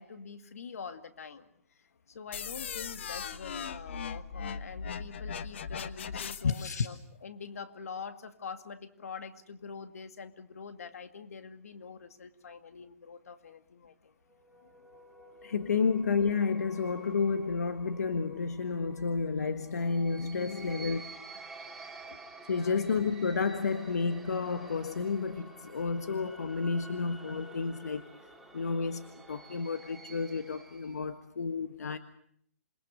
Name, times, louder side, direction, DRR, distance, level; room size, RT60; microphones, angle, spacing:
voice 1, 0.0-1.5 2.1-7.0 7.2-14.1 20.3-20.8 22.5-22.8, left 5 dB, 70° left, 2.2 m, -45 dB
sound 1, 2.3-6.7, left 6 dB, 50° left, 1.2 m, -39 dB
voice 2, 6.4-6.9 15.4-21.0 22.1-22.2 22.4-28.0 28.5-32.0, left 5 dB, 85° left, 1.5 m, -31 dB
sound 2, 14.3-31.1, right 3 dB, ahead, 2.0 m, -51 dB
27.5 x 22.5 x 6.5 m
hypercardioid pair, 175°, 8 cm